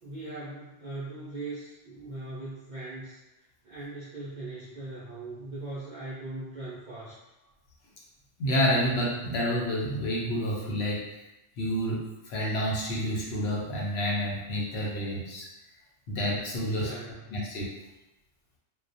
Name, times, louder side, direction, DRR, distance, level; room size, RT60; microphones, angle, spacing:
voice 1, 0.0-3.2 3.6-7.2 16.8-17.3, right 2 dB, 65° right, -8 dB, 0.4 m, -40 dB
voice 2, 8.4-11.2 11.6-15.5 16.1-16.9 17.3-17.7, equal, 65° left, -4 dB, 0.8 m, -29 dB
2.2 x 2.1 x 2.5 m, 0.98 s
omnidirectional pair, 1.3 m